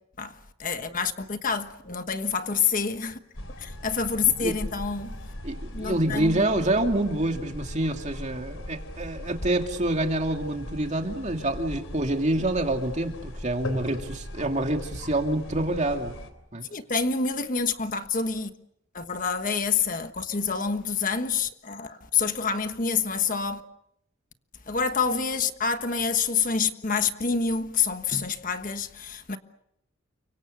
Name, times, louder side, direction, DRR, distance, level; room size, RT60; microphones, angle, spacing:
voice 1, 0.2-3.2 3.6-5.1 5.7-6.5 16.7-18.5 18.9-23.6 24.7-29.4, left 5 dB, 40° left, 1.4 m, -27 dB
sound 1, 3.3-16.3, left 1 dB, 80° left, 3.8 m, -39 dB
voice 2, 5.4-16.1 16.5-16.7, right 1 dB, 35° right, 2.5 m, -27 dB
30.0 x 24.5 x 6.6 m
head